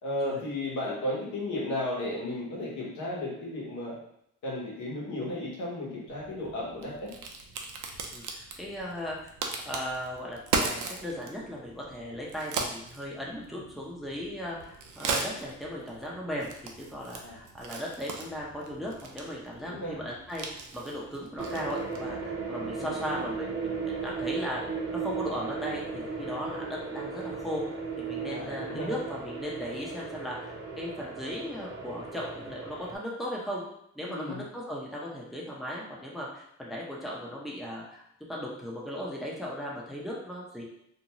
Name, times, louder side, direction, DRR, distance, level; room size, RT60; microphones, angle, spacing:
voice 1, 0.0-4.0 4.4-7.1 13.5-13.6 17.1-17.3 19.6-20.0 22.7-22.9 28.2-28.9 34.0-34.4, left 1 dB, 75° left, -4 dB, 1.1 m, -34 dB
Crack, 6.1-22.2, right 4 dB, 80° right, 0.5 m, -38 dB
voice 2, 8.1-9.3 9.7-16.5 16.8-24.6 24.9-33.6 33.9-38.0 38.3-40.6, equal, ahead, -4 dB, 0.6 m, -37 dB
sound 1, 21.4-33.0, right 4 dB, 35° right, 0.8 m, -36 dB
2.6 x 2.2 x 2.9 m, 0.73 s
cardioid pair, 90°, 30 cm